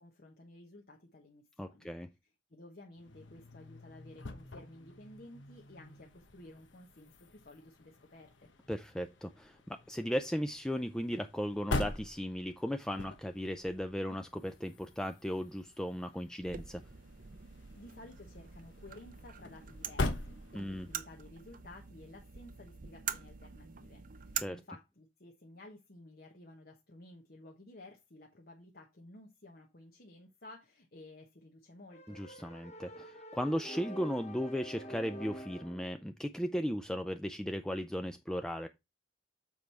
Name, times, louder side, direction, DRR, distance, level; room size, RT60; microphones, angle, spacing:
voice 1, 0.0-1.9 2.2-8.5 17.8-32.2, left 2 dB, 50° left, 1.1 m, -54 dB
voice 2, 1.6-2.1 8.7-16.8 20.5-20.9 24.4-24.6 32.1-38.7, equal, 5° left, 0.3 m, -36 dB
sound 1, 3.0-21.0, left 2 dB, 75° left, 1.2 m, -44 dB
sound 2, 16.4-24.4, right 8 dB, 45° right, 0.6 m, -45 dB
sound 3, 31.9-35.9, right 1 dB, 35° left, 1.4 m, -47 dB
7.3 x 4.7 x 4.2 m
head